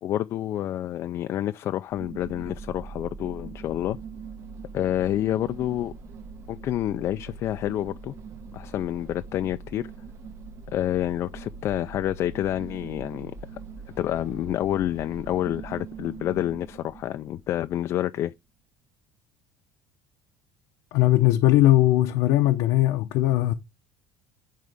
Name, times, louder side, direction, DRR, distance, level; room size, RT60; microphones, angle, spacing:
voice 1, 0.0-4.0 4.7-5.9 6.5-8.1 8.5-9.9 10.7-13.3 14.0-18.3, left 12 dB, 45° left, 0.4 m, -28 dB
sound 1, 1.9-17.8, right 4 dB, 40° right, 0.9 m, -42 dB
voice 2, 20.9-23.5, left 15 dB, 70° left, 0.7 m, -19 dB
10.5 x 3.8 x 3.4 m
cardioid pair, 150°, 7 cm